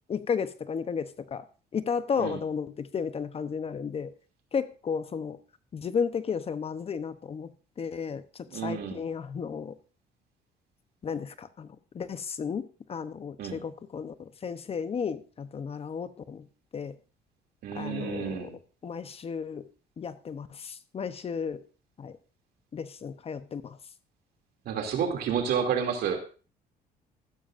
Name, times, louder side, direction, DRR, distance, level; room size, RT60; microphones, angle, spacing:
voice 1, 0.1-1.4 1.7-4.1 4.5-5.4 5.7-7.5 7.8-9.8 11.0-16.5 16.7-17.0 17.7-18.5 18.8-19.7 20.0-21.6 22.0-22.2 22.7-23.8, left 6 dB, 35° left, 12 dB, 0.8 m, -33 dB
voice 2, 8.5-9.1 13.4-13.6 17.6-18.5 24.6-26.2, right 7 dB, 70° right, 3 dB, 2.7 m, -30 dB
14.5 x 12.5 x 2.6 m, 0.36 s
cardioid pair, 110°, 17 cm